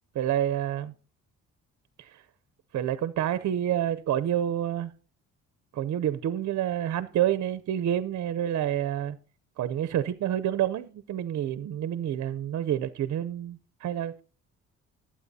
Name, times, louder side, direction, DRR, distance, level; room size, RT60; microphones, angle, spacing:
voice 1, 0.1-0.9 2.0-2.2 2.7-4.9 5.7-9.2 9.6-14.1, right 11 dB, 60° right, 0.7 m, -28 dB
19.5 x 8.7 x 2.7 m
cardioid pair, 90°, 30 cm